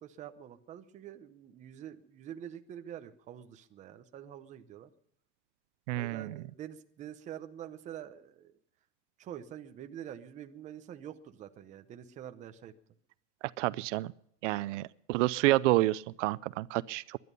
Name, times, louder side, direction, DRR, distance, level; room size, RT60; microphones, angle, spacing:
voice 1, 0.0-4.9 5.9-8.5 9.2-12.7, right 10 dB, 20° right, 8 dB, 0.7 m, -46 dB
voice 2, 5.9-6.3 13.6-14.1 14.4-17.2, right 18 dB, 70° right, 18 dB, 0.6 m, -29 dB
20.5 x 11.0 x 5.3 m, 0.72 s
supercardioid pair, 170°, 37 cm